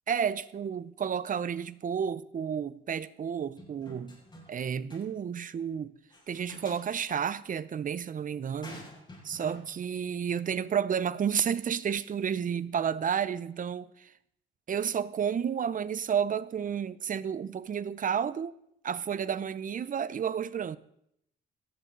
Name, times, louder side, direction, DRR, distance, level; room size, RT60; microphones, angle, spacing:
voice 1, 0.1-4.2 4.5-5.9 6.3-8.8 9.2-14.1 14.7-18.5 18.8-20.8, right 7 dB, 40° right, 0.7 m, -31 dB
sound 1, 3.6-4.6 4.9-5.0 6.1-7.2 8.6-9.6, left 1 dB, 25° left, 6.9 m, -48 dB
18.0 x 12.5 x 4.0 m
cardioid pair, 90°, 20 cm